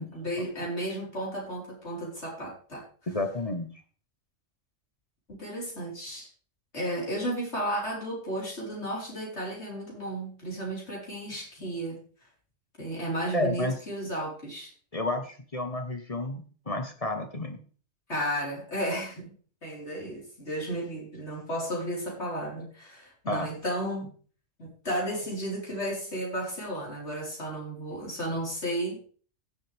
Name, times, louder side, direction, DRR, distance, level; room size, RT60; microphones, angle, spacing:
voice 1, 0.0-2.8 5.3-6.3 6.7-12.0 12.8-14.7 18.1-19.3 19.6-24.1 24.6-29.1, equal, 60° left, -4 dB, 4.9 m, -33 dB
voice 2, 3.1-3.7 13.3-13.8 14.9-17.6 23.3-23.5, left 2 dB, 30° left, 6 dB, 1.2 m, -31 dB
16.5 x 7.8 x 3.5 m, 0.41 s
omnidirectional pair, 1.3 m